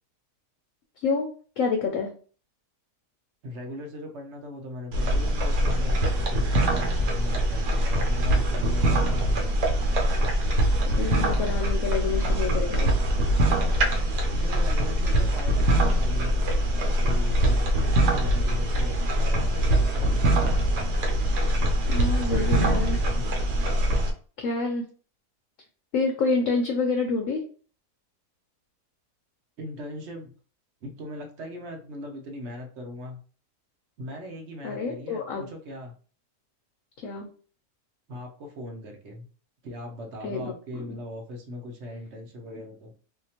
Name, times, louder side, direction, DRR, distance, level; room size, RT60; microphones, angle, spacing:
voice 1, 1.6-2.1 10.9-12.9 21.9-23.0 24.4-24.8 25.9-27.4 34.6-35.5 37.0-37.3 40.2-41.0, left 4 dB, 65° left, 3 dB, 0.8 m, -28 dB
voice 2, 3.4-5.9 6.2-9.7 14.3-20.2 22.2-23.2 29.6-30.3 30.8-33.2 34.0-35.9 38.1-39.3 39.6-42.9, left 1 dB, 55° right, 2 dB, 0.9 m, -39 dB
sound 1, 4.9-24.1, right 1 dB, 75° right, 1.3 m, -23 dB
3.6 x 2.8 x 2.8 m, 0.41 s
omnidirectional pair, 1.8 m